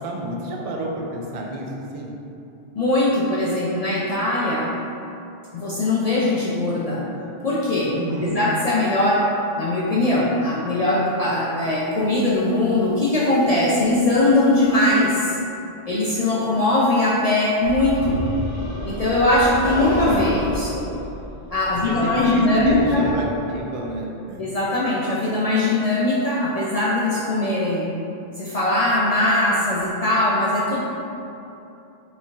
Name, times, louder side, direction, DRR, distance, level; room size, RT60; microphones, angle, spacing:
voice 1, 0.0-2.1 7.9-8.4 21.7-24.4, right 1 dB, 50° right, -1 dB, 0.4 m, -30 dB
voice 2, 2.8-4.7 5.5-7.0 7.4-9.3 9.6-15.4 15.9-18.2 18.8-20.9 21.5-23.0 24.4-27.9 28.4-30.8, left 2 dB, 60° left, -6 dB, 0.4 m, -20 dB
sound 1, 17.6-23.1, equal, 15° left, 0.9 m, -30 dB
5.2 x 3.3 x 2.3 m, 2.8 s
omnidirectional pair, 1.2 m